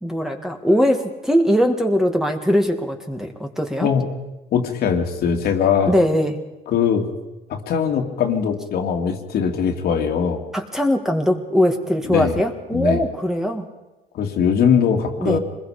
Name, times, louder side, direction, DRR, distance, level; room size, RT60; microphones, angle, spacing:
voice 1, 0.0-3.9 5.9-6.4 10.5-13.7 15.2-15.4, equal, 5° right, 4 dB, 2.1 m, -20 dB
voice 2, 4.5-5.9 6.7-7.0 7.5-10.4 12.1-12.4 12.7-13.0 14.1-15.4, left 7 dB, 70° left, 3 dB, 2.5 m, -20 dB
26.0 x 21.0 x 5.1 m, 1.0 s
cardioid pair, 110°, 17 cm